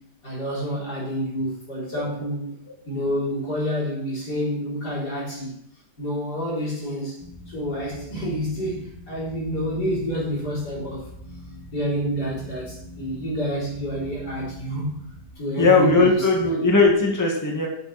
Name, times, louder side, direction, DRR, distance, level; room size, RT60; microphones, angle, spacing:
voice 1, 0.2-2.5 2.9-5.6 6.0-7.2 7.5-11.1 11.7-14.9 15.4-16.7, equal, 70° left, -5 dB, 4.6 m, -28 dB
sound 1, 7.2-15.3, left 1 dB, 15° right, 1.3 m, -43 dB
voice 2, 15.6-17.7, left 3 dB, 10° left, -1 dB, 1.7 m, -18 dB
11.5 x 7.0 x 4.2 m, 0.74 s
omnidirectional pair, 1.8 m